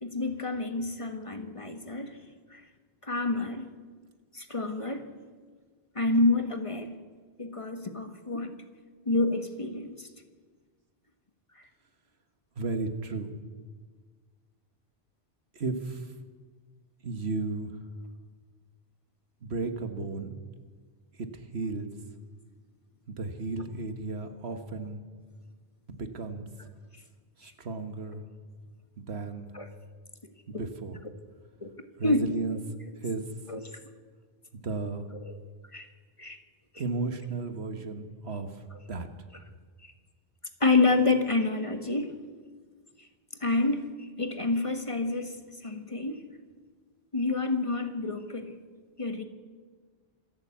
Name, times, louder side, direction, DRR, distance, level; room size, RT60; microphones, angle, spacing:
voice 1, 0.0-2.2 2.5-2.6 3.0-3.7 4.3-5.1 5.9-6.9 7.4-8.5 9.0-10.0 27.4-27.5 29.5-29.7 30.5-30.6 31.6-31.7 32.0-32.3 33.5-33.6 35.2-35.4 35.7-35.9 36.2-36.4 40.6-42.2 43.4-45.3 45.6-46.2 47.1-48.6 49.0-49.2, left 3 dB, 30° left, 7 dB, 1.5 m, -28 dB
voice 2, 12.6-13.3 15.5-16.1 17.0-17.7 19.4-20.4 21.2-21.9 23.1-25.0 25.9-26.5 27.4-28.2 29.0-29.5 30.5-31.0 32.0-32.6 33.0-33.3 34.5-35.1 36.8-38.5 38.9-39.1, right 3 dB, 75° right, 7 dB, 1.7 m, -34 dB
26.5 x 11.5 x 8.5 m, 1.5 s
omnidirectional pair, 1.1 m